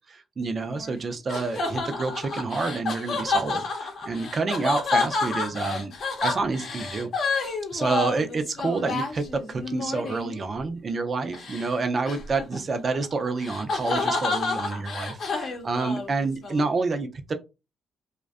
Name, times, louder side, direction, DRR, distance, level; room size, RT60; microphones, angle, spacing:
voice 1, 0.1-5.9 6.2-17.3, right 3 dB, 40° right, 7 dB, 0.4 m, -28 dB
sound 1, 0.6-10.4 11.3-11.7 12.1-16.6, left 3 dB, 60° left, 0.7 m, -30 dB
2.5 x 2.1 x 2.4 m, 0.27 s
cardioid pair, 90°, 0 cm